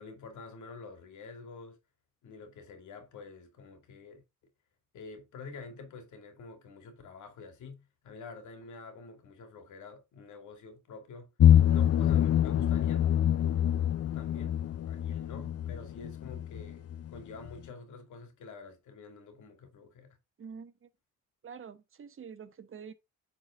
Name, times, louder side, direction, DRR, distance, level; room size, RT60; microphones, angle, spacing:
voice 1, 0.0-1.8 2.2-4.2 4.9-11.3 11.7-13.0 14.1-14.6 14.9-20.2, left 4 dB, 75° left, 2.5 m, -47 dB
sound 1, 11.4-17.2 17.5-17.6, left 10 dB, 55° left, 0.7 m, -25 dB
voice 2, 20.4-20.9 21.4-22.9, right 6 dB, 45° right, 1.0 m, -46 dB
8.7 x 4.4 x 3.7 m
cardioid pair, 90°, 30 cm